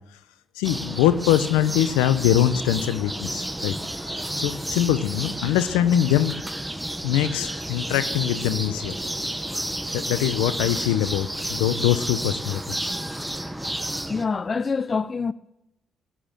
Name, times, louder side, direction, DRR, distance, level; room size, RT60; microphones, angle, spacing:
voice 1, 0.6-3.7 4.4-6.4 7.0-8.9 9.9-12.9, left 12 dB, 85° left, 0.7 m, -23 dB
sound 1, 0.6-14.3, right 1 dB, 10° right, 0.9 m, -31 dB
voice 2, 14.1-15.3, left 5 dB, 40° left, 0.4 m, -25 dB
16.0 x 8.7 x 7.4 m
hypercardioid pair, 50°, 0 cm